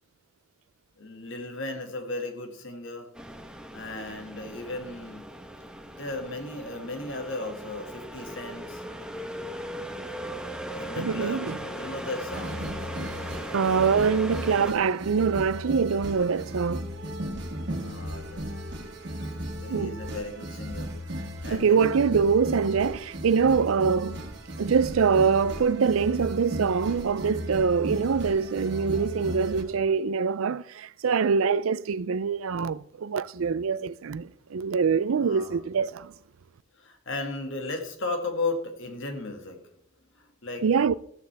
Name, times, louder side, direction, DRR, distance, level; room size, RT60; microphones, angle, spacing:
voice 1, 1.0-3.1 3.7-5.3 6.0-8.8 10.7-12.6 17.8-18.4 19.6-20.9 21.2-22.0 35.2-35.6 36.7-39.6 40.2-40.6, left 2 dB, 65° left, 2.1 m, -35 dB
sound 1, 3.1-14.7, equal, 5° right, 1.0 m, -38 dB
voice 2, 11.0-11.6 13.5-16.9 19.7-20.0 21.5-24.2 24.6-36.1 40.6-40.9, right 5 dB, 75° right, 0.5 m, -24 dB
sound 2, 12.3-29.6, equal, 55° right, 1.9 m, -36 dB
14.0 x 13.5 x 3.5 m
head